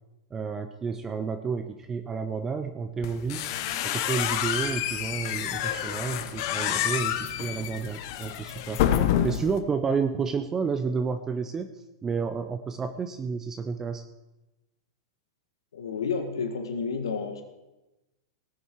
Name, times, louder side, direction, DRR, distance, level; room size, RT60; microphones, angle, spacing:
voice 1, 0.3-3.5 3.8-8.8 9.2-14.0, right 5 dB, 20° right, 8 dB, 0.8 m, -31 dB
sound 1, 3.0-9.6, left 10 dB, 55° left, 1.1 m, -28 dB
voice 2, 15.7-17.4, left 5 dB, 85° left, 6 dB, 1.7 m, -30 dB
19.0 x 7.1 x 4.7 m, 1.0 s
hypercardioid pair, 125°, 2 cm